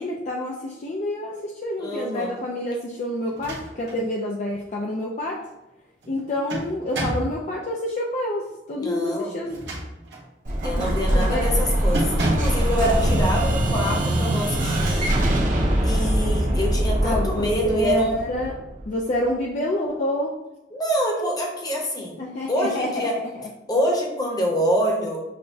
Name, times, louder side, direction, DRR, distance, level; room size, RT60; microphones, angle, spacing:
voice 1, 0.0-5.4 6.1-9.6 10.8-11.5 17.0-18.6 18.8-20.3 22.2-23.5, left 1 dB, 40° left, -2 dB, 0.4 m, -28 dB
voice 2, 1.8-2.4 8.8-9.3 10.6-15.1 15.8-18.1 20.7-22.1 22.5-23.2 23.7-25.2, equal, 25° left, -1 dB, 0.8 m, -26 dB
sound 1, 3.3-4.0 4.5-4.6 6.0-7.4 9.4-10.3 10.8-11.0 11.4-11.6 11.9-12.6, right 1 dB, 90° right, 1.1 m, -28 dB
Explosion, 10.5-19.1, right 1 dB, 50° right, 0.8 m, -23 dB
6.4 x 2.2 x 2.7 m, 0.96 s
head